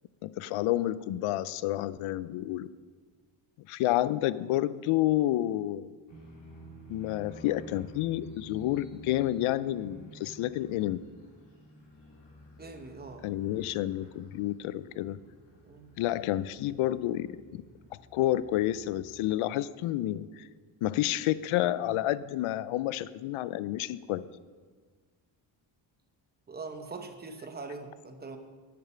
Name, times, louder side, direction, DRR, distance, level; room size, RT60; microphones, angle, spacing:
voice 1, 0.2-2.7 3.7-5.9 6.9-11.1 13.2-15.2 16.0-17.6 18.1-20.5 20.8-24.3, left 14 dB, 85° left, 17 dB, 0.5 m, -29 dB
sound 1, 6.1-19.3, right 1 dB, 60° left, 3.0 m, -52 dB
voice 2, 12.6-13.3 15.6-15.9 26.5-28.4, right 3 dB, 20° right, 6 dB, 0.9 m, -42 dB
8.7 x 8.6 x 5.6 m, 1.5 s
cardioid pair, 135°, 48 cm